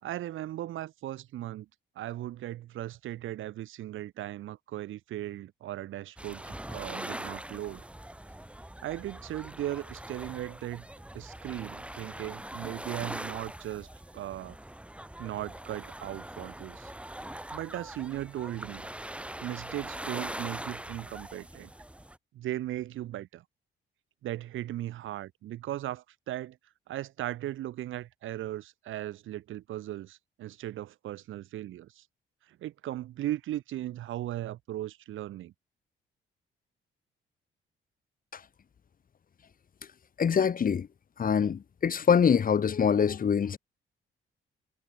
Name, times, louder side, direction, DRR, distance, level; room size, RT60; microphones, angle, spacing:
voice 1, 0.0-1.7 2.0-7.8 8.8-10.9 11.1-13.9 14.1-14.6 15.2-16.9 17.5-18.9 19.4-21.7 22.3-23.4 24.2-26.6 26.9-32.0 32.5-35.5, right 14 dB, 80° right, 3.5 m, -37 dB
sound 1, 6.2-22.2, right 1 dB, 5° right, 2.2 m, -42 dB
voice 2, 40.2-40.9 41.2-43.6, left 7 dB, 45° left, 1.9 m, -24 dB
cardioid pair, 90°, 20 cm